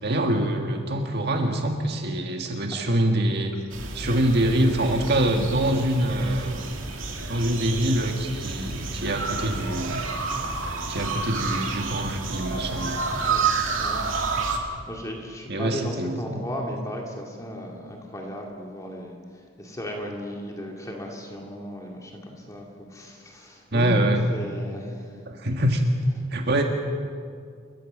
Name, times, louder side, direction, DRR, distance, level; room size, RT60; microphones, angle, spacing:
voice 1, 0.0-3.6 3.9-6.7 7.3-10.0 10.9-13.0 14.3-14.4 15.5-16.4 23.7-24.2 25.3-25.8 26.3-26.6, right 1 dB, 55° right, 3 dB, 1.8 m, -25 dB
sound 1, 3.7-14.6, right 4 dB, 75° right, 2.6 m, -30 dB
voice 2, 12.5-12.9 13.2-14.0 14.4-24.1 24.3-25.2, equal, 15° left, -1 dB, 2.4 m, -36 dB
29.5 x 14.5 x 7.3 m, 2.2 s
head